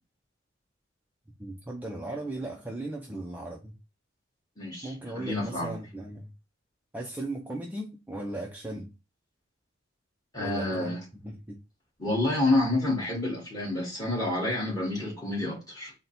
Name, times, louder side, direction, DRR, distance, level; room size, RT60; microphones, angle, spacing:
voice 1, 1.4-3.8 4.8-6.3 6.9-8.9 10.4-11.0 11.2-11.6, right 1 dB, 10° right, 0.4 m, -37 dB
voice 2, 4.6-5.7 10.3-11.0 12.0-15.9, left 2 dB, 20° left, 1.8 m, -29 dB
4.0 x 2.2 x 4.0 m
head